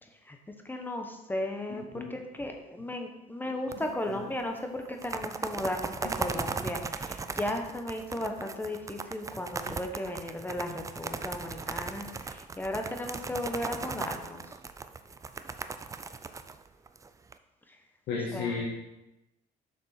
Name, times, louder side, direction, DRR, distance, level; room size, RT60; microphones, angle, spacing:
voice 1, 0.0-0.4 0.6-14.5 17.7-17.8 18.3-18.7, left 1 dB, 10° left, 4 dB, 1.0 m, -36 dB
voice 2, 3.7-4.2 9.7-9.8 18.1-18.7, left 4 dB, 80° left, -4 dB, 1.6 m, -34 dB
sound 1, 3.7-4.4 4.8-17.3, right 4 dB, 20° right, 0.4 m, -37 dB
7.0 x 6.1 x 4.3 m, 0.98 s
cardioid pair, 110°, 17 cm